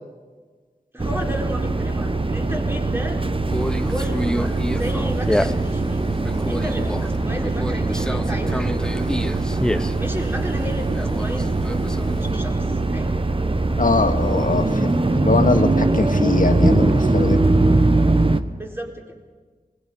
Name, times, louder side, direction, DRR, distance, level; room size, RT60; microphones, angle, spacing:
voice 1, 0.9-3.2 3.8-6.1 6.5-8.9 10.0-11.5 12.2-13.2 18.5-19.2, equal, 15° right, 0 dB, 4.2 m, -33 dB
sound 1, 1.0-18.4, right 2 dB, 35° right, 1.1 m, -21 dB
Conversation, 3.5-12.3, equal, 5° left, 0.8 m, -29 dB
voice 2, 13.8-17.5, left 3 dB, 55° left, 5 dB, 2.1 m, -22 dB
26.5 x 21.5 x 5.5 m, 1.4 s
wide cardioid pair, 65°, 16 cm